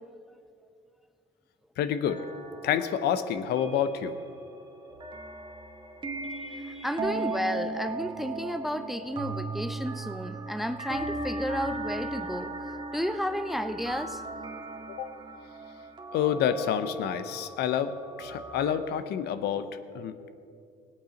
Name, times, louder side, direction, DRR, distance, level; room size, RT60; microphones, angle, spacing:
voice 1, 1.8-2.2 2.6-4.2 14.9-15.1 16.1-17.9 18.2-20.3, left 9 dB, 75° left, 11 dB, 0.8 m, -28 dB
sound 1, 2.1-18.8, right 2 dB, 25° right, 1.8 m, -37 dB
voice 2, 6.3-12.5 12.9-14.2, equal, ahead, 10 dB, 0.5 m, -32 dB
17.5 x 8.8 x 5.2 m, 2.5 s
cardioid pair, 110°, 17 cm